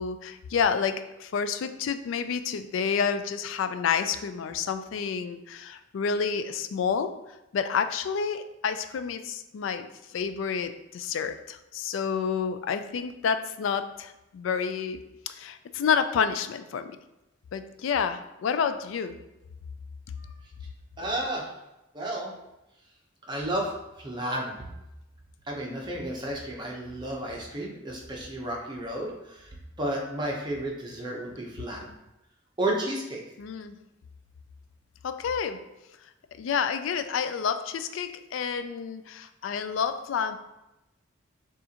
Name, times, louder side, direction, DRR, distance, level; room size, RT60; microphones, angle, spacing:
voice 1, 0.0-7.2 7.5-15.0 15.3-16.9 17.5-19.2 33.4-33.7 35.0-35.7 36.4-40.4, left 6 dB, 75° left, 10 dB, 0.3 m, -29 dB
voice 2, 21.0-21.5 21.9-22.3 23.3-24.6 25.5-31.9 32.6-33.2, right 1 dB, 20° right, -2 dB, 0.8 m, -32 dB
6.7 x 2.5 x 2.8 m, 0.93 s
head